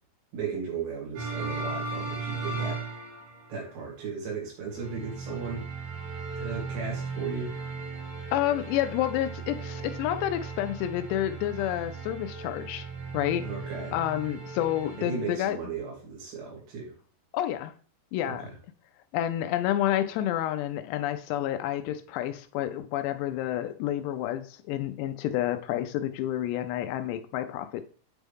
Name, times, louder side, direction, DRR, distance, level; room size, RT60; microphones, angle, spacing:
voice 1, 0.3-2.8 3.5-5.7 6.4-7.5 13.4-14.0 15.0-16.9 18.2-18.5, right 5 dB, 85° right, -3 dB, 5.2 m, -36 dB
sound 1, 1.2-3.6 4.7-15.3, right 4 dB, 70° right, 5.2 m, -37 dB
voice 2, 8.3-12.9 13.1-13.5 13.9-15.6 17.3-17.7 18.1-18.5 19.1-27.8, left 12 dB, 85° left, 9 dB, 2.8 m, -29 dB
9.2 x 4.4 x 3.6 m, 0.40 s
omnidirectional pair, 5.0 m